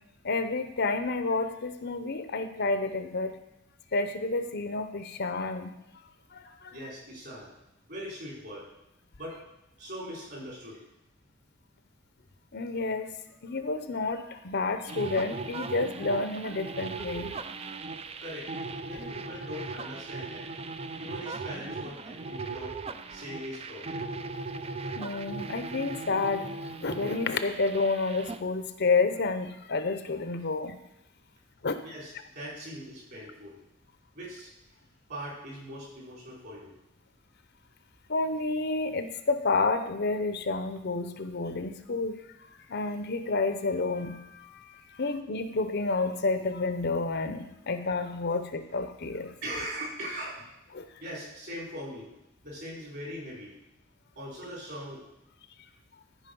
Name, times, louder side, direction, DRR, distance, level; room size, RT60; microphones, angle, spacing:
voice 1, 0.2-3.4 3.9-5.7 6.3-6.8 12.5-13.1 13.4-17.4 25.0-26.5 26.8-30.8 31.6-31.8 38.1-42.2 42.7-49.3 50.7-50.9, left 3 dB, 55° left, 9 dB, 0.7 m, -30 dB
voice 2, 6.7-7.5 7.9-8.7 9.2-9.4 9.8-10.8 18.2-18.5 18.8-20.5 21.0-22.7 23.1-24.1 31.8-33.6 34.1-34.5 35.1-36.7 49.4-50.4 51.0-52.1 52.4-53.6 54.1-55.0, equal, 55° right, -4 dB, 4.6 m, -40 dB
sound 1, 14.9-28.4, right 3 dB, 30° right, 0.4 m, -38 dB
13.5 x 5.2 x 5.4 m, 0.85 s
head